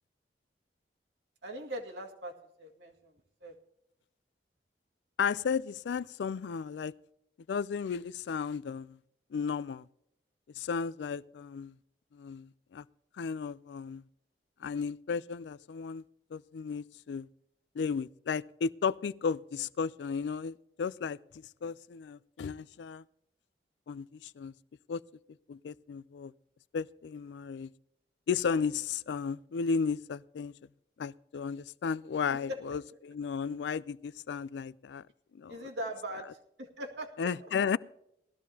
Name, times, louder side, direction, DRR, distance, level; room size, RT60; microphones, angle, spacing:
voice 1, 1.4-3.1 3.4-3.5 32.5-32.6 35.5-37.3, equal, 85° right, 2.1 m, -40 dB
voice 2, 5.2-6.9 7.5-9.0 9.3-9.8 10.6-11.7 12.1-12.8 13.2-14.0 14.6-16.0 16.3-17.3 17.8-21.2 21.6-23.0 23.9-24.5 24.9-25.0 25.5-26.3 26.7-27.7 28.3-30.5 31.0-35.0 35.3-35.5 37.2-37.8, left 6 dB, 80° left, 0.4 m, -34 dB
18.5 x 13.5 x 2.8 m
head